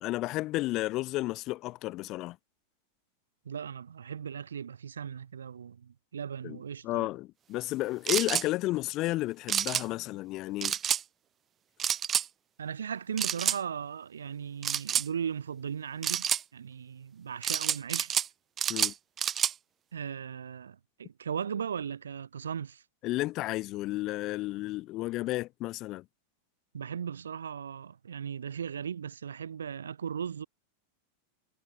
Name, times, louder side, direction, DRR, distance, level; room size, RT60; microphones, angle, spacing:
voice 1, 0.0-2.4 6.4-6.6 6.8-10.7 18.7-18.9 23.0-26.0, left 18 dB, 40° left, 1.4 m, -32 dB
voice 2, 3.4-7.1 12.6-16.3 16.5-18.1 19.9-22.8 26.7-30.5, right 7 dB, 70° right, 5.7 m, -37 dB
sound 1, 8.1-8.5 9.5-9.8 10.6-11.0 11.8-12.3 13.2-13.6 14.6-15.1 16.0-16.4 17.4-18.3 18.6-19.5, right 9 dB, 25° right, 2.5 m, -28 dB
figure-of-eight pair, 90°, 0 cm